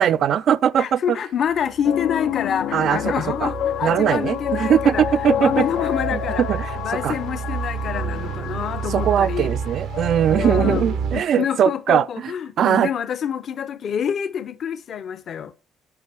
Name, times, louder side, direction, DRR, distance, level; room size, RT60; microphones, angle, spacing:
voice 1, 0.0-1.0 2.7-3.0 3.4-3.5 3.8-5.7 6.1-6.2 6.5-6.7 7.0-7.2 8.9-12.3 12.6-12.9, right 9 dB, 55° right, 0.3 m, -20 dB
voice 2, 0.8-5.0 5.4-6.4 6.8-9.5 10.3-15.5, left 8 dB, 50° left, 0.7 m, -27 dB
sound 1, 1.5-11.2, right 6 dB, 80° right, 0.9 m, -30 dB
sound 2, 1.8-10.8, left 10 dB, 85° left, 0.6 m, -29 dB
9.5 x 5.3 x 4.5 m
cardioid pair, 135°, 0 cm